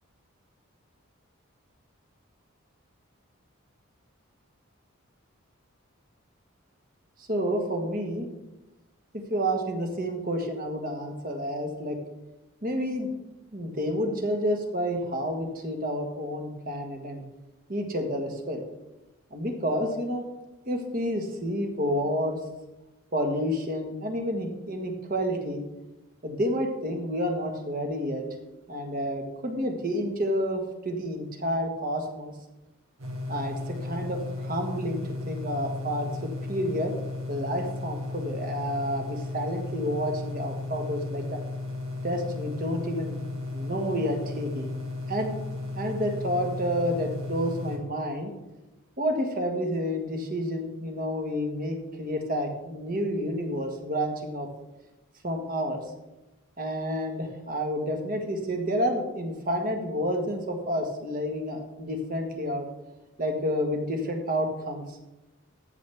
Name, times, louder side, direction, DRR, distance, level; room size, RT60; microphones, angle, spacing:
voice 1, 7.2-8.3 9.3-12.0 12.6-13.1 13.5-17.2 17.7-18.6 19.3-20.2 20.6-22.4 23.1-25.6 26.2-28.2 28.7-32.3 33.3-35.0 35.3-36.9 37.3-41.2 42.0-43.2 43.5-44.7 45.1-45.3 45.8-48.3 49.0-54.5 55.2-55.8 56.6-62.7 63.2-65.0, equal, 40° right, 3 dB, 1.5 m, -29 dB
sound 1, 33.0-47.8, left 2 dB, 75° right, 2.2 m, -35 dB
14.0 x 6.8 x 3.5 m, 1.0 s
head